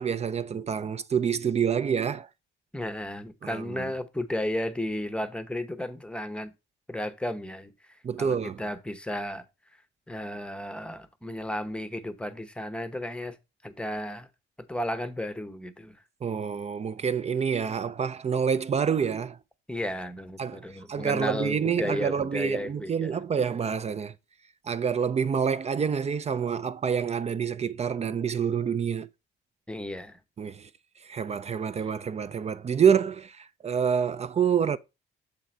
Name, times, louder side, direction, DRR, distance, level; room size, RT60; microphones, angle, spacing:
voice 1, 0.0-2.3 3.4-3.9 8.0-8.6 16.2-19.4 20.4-24.1 24.6-29.1 30.4-30.7 31.0-34.8, right 7 dB, 35° right, 0.4 m, -27 dB
voice 2, 2.7-6.5 6.9-9.4 10.1-13.4 13.6-14.3 14.6-16.0 19.7-23.2 29.7-30.2 31.8-31.9, left 1 dB, 5° left, 0.8 m, -34 dB
7.1 x 3.8 x 4.3 m
cardioid pair, 90°, 20 cm